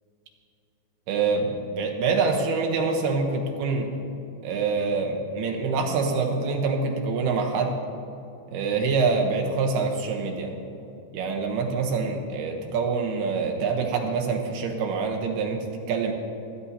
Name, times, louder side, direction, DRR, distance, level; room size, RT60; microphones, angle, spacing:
voice 1, 1.1-3.9 4.4-7.7 8.5-10.5 11.1-16.1, right 4 dB, 75° right, 2 dB, 3.0 m, -25 dB
17.0 x 12.5 x 2.9 m, 2.7 s
omnidirectional pair, 4.7 m